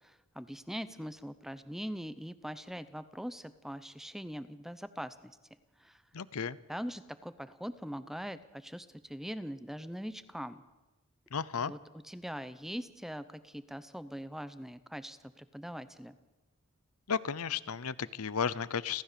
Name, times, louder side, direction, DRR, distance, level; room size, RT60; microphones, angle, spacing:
voice 1, 0.0-5.3 5.8-6.0 6.7-10.6 11.7-11.8 12.0-16.2, equal, ahead, 13 dB, 0.7 m, -42 dB
voice 2, 6.1-6.6 11.3-11.7 17.1-19.0, left 6 dB, 85° left, 17 dB, 0.8 m, -34 dB
30.0 x 13.0 x 6.8 m, 1.1 s
head